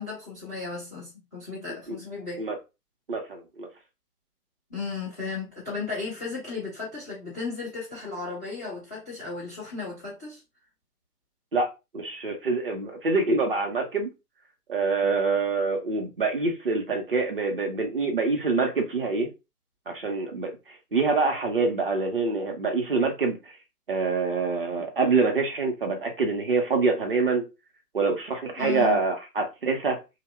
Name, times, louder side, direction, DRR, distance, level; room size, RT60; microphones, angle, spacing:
voice 1, 0.0-2.4 4.7-10.4 28.6-29.0, left 4 dB, 10° left, 0.5 m, -35 dB
voice 2, 3.1-3.7 11.5-11.7 11.9-14.1 14.7-19.3 19.9-20.5 20.9-23.5 23.9-27.4 27.9-30.0, right 4 dB, 35° right, 0.6 m, -25 dB
2.7 x 2.1 x 3.3 m
figure-of-eight pair, 130°, 48 cm